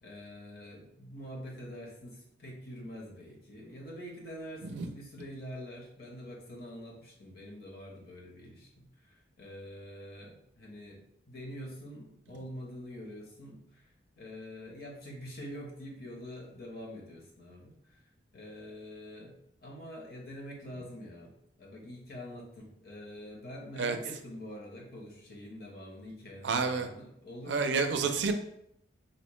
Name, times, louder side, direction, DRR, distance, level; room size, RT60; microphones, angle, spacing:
voice 1, 0.0-13.9 14.2-18.1 18.3-28.2, equal, 50° left, -1 dB, 0.8 m, -45 dB
voice 2, 26.4-26.9 27.5-28.3, right 5 dB, 70° right, 7 dB, 0.4 m, -29 dB
4.1 x 2.1 x 3.0 m, 0.73 s
head